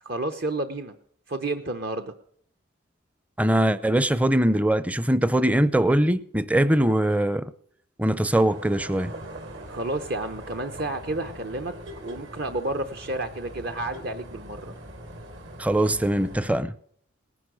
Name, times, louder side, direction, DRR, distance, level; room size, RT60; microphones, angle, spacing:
voice 1, 0.0-0.9 1.3-2.1 9.7-11.7 12.0-14.8, right 2 dB, 50° right, 0.8 m, -31 dB
voice 2, 3.4-7.5 8.0-9.1 15.6-16.7, right 1 dB, 5° right, 0.5 m, -22 dB
sound 1, 8.3-16.6, right 1 dB, 65° right, 3.2 m, -42 dB
19.0 x 11.0 x 6.3 m
head